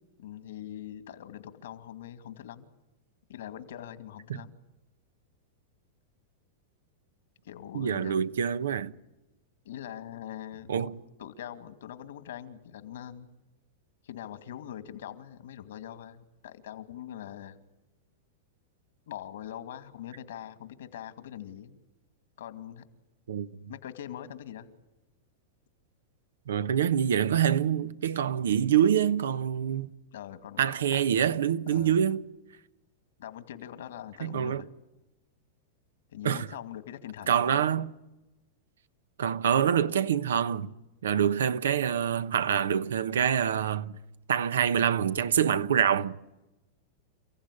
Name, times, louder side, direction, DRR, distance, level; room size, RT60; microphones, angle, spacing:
voice 1, 0.2-2.7 3.3-4.6 7.4-8.2 9.6-13.3 14.0-17.6 19.1-21.8 22.4-22.8 23.7-24.7 30.1-31.0 31.7-32.0 33.2-34.7 36.1-37.7, left 10 dB, 80° left, 2.3 m, -42 dB
voice 2, 7.7-8.9 10.7-11.0 23.3-23.5 26.5-29.9 30.6-32.2 34.2-34.6 36.2-36.5 37.3-37.9 39.2-40.7 41.0-44.0 44.3-46.2, right 9 dB, 90° right, 1.0 m, -26 dB
29.5 x 15.5 x 10.0 m
hypercardioid pair, 130°, 0 cm